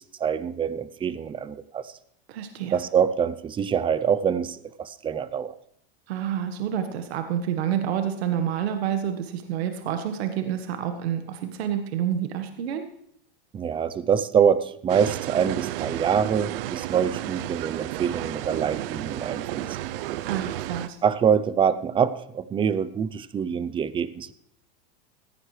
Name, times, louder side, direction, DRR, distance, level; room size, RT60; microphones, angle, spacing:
voice 1, 0.2-1.9 2.7-5.5 13.5-19.8 21.0-24.3, right 7 dB, 15° right, 16 dB, 0.5 m, -25 dB
voice 2, 2.3-2.8 6.1-12.8 20.3-21.0, right 9 dB, 80° right, 6 dB, 1.5 m, -28 dB
sound 1, 14.9-20.9, right 14 dB, 60° right, 0.7 m, -32 dB
16.5 x 15.0 x 3.3 m, 0.71 s
supercardioid pair, 140°, 31 cm